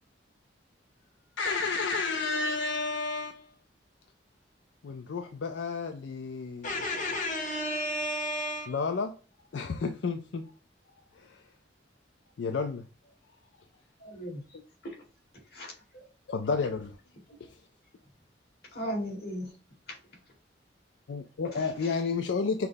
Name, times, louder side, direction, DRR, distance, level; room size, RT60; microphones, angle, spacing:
voice 1, 1.4-3.5 4.8-6.7 8.7-9.2 9.5-10.5 11.1-11.4 12.4-12.8 16.3-17.0 17.4-17.6 21.1-22.7, left 4 dB, 80° left, 0.4 m, -31 dB
voice 2, 6.6-8.7, left 1 dB, 45° left, 1.7 m, -32 dB
voice 3, 14.0-14.4 14.8-14.9 15.5-16.0 18.7-19.5 19.9-20.0 21.5-21.9, equal, 60° left, 2.2 m, -37 dB
5.8 x 2.1 x 3.3 m
head